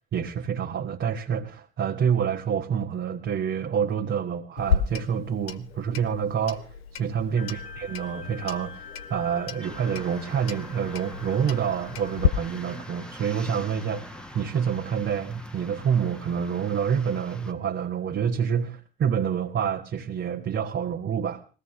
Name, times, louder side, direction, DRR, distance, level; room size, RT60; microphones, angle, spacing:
voice 1, 0.1-21.4, right 7 dB, 40° right, 1.4 m, -27 dB
Clock, 4.6-12.3, left 7 dB, 80° left, 0.9 m, -32 dB
sound 1, 7.4-18.2, left 5 dB, 60° left, 4.8 m, -48 dB
sound 2, 9.6-17.5, equal, 5° left, 1.6 m, -43 dB
22.0 x 16.5 x 3.4 m
figure-of-eight pair, 55°, 30 cm